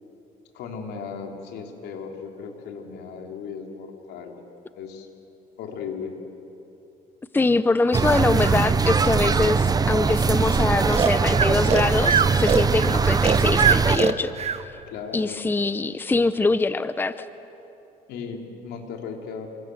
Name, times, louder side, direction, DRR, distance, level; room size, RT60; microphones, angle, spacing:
voice 1, 0.5-4.3 4.7-5.1 5.6-6.1 14.9-15.4 18.1-19.5, left 6 dB, 80° left, 2 dB, 3.7 m, -36 dB
voice 2, 7.3-14.3 15.1-17.2, left 3 dB, 10° left, 13 dB, 0.7 m, -23 dB
sound 1, 7.9-14.0, right 5 dB, 20° right, 0.8 m, -21 dB
Breathing, 10.9-14.6, right 7 dB, 40° right, 1.1 m, -22 dB
28.5 x 26.5 x 7.9 m, 2.9 s
cardioid pair, 110°, 17 cm